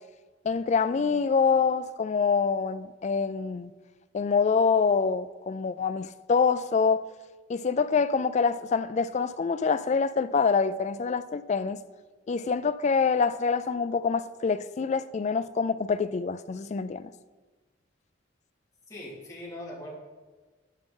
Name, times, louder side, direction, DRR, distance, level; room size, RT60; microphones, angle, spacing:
voice 1, 0.4-3.7 4.1-7.0 7.5-11.8 12.3-17.1, left 5 dB, 35° left, 0.3 m, -26 dB
voice 2, 18.9-19.9, left 1 dB, 20° left, 2.5 m, -40 dB
11.0 x 7.5 x 3.8 m
head